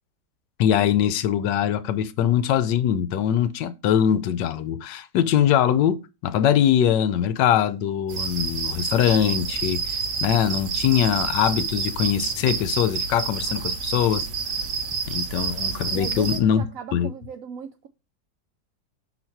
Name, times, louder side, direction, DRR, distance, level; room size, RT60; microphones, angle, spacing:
voice 1, 0.6-14.3 15.1-16.6 16.9-17.1, left 9 dB, 80° left, 1.3 m, -22 dB
sound 1, 8.1-16.4, right 5 dB, 50° right, 1.2 m, -29 dB
voice 2, 15.9-17.9, right 8 dB, 75° right, 0.7 m, -37 dB
6.3 x 4.1 x 4.4 m
omnidirectional pair, 1.9 m